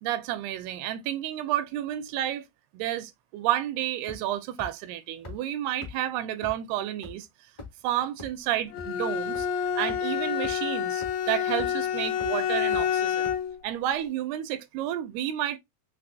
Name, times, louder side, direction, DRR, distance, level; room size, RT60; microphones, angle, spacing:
voice 1, 0.0-2.5 2.7-7.3 7.8-9.5 9.8-13.3 13.6-15.6, right 12 dB, 85° right, 2.6 m, -31 dB
sound 1, 4.1-4.3 4.6-4.7 5.2-5.3 5.8-5.9 6.4-6.5 7.0-7.1 7.6-7.8 8.2-8.3 8.8-8.9 9.3-9.4 9.9-10.0 10.4-10.5 11.0-11.1 11.6-11.8 12.2-12.3 12.7-12.8 13.2-13.3, left 3 dB, 35° left, 0.7 m, -40 dB
Bowed string instrument, 8.7-13.6, left 8 dB, 80° left, 2.3 m, -28 dB
6.0 x 2.8 x 2.6 m
omnidirectional pair, 4.5 m